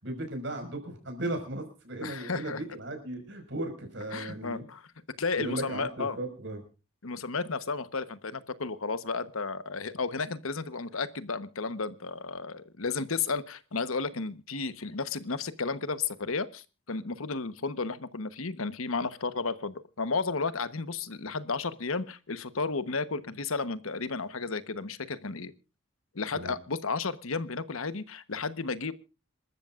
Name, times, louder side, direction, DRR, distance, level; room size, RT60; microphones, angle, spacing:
voice 1, 0.0-4.6 5.4-6.6 26.3-26.6, right 1 dB, 60° right, 6 dB, 5.5 m, -36 dB
voice 2, 2.0-2.6 4.1-4.9 5.2-6.2 7.0-25.5 26.1-28.9, left 4 dB, 80° left, 13 dB, 1.1 m, -33 dB
27.0 x 13.5 x 2.5 m, 0.33 s
head